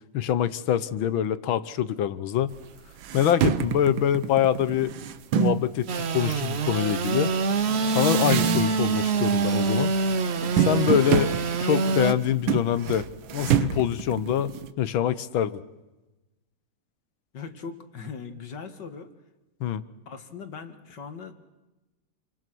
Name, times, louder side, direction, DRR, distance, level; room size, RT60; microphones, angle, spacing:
voice 1, 0.1-2.5 3.1-4.9 5.4-7.3 7.9-9.9 10.6-11.3 11.6-13.1 13.3-15.6 19.6-19.8, left 10 dB, 85° left, 15 dB, 1.8 m, -25 dB
sound 1, 2.5-2.6 3.0-5.7 6.3-9.0 9.2-9.8 10.0-14.7, right 9 dB, 80° right, 1.8 m, -28 dB
Engine / Sawing, 5.9-12.1, right 4 dB, 45° right, 0.9 m, -25 dB
voice 2, 17.3-19.1 20.1-21.4, left 5 dB, 60° left, 8 dB, 2.4 m, -39 dB
27.5 x 25.5 x 6.2 m, 1.1 s
omnidirectional pair, 2.1 m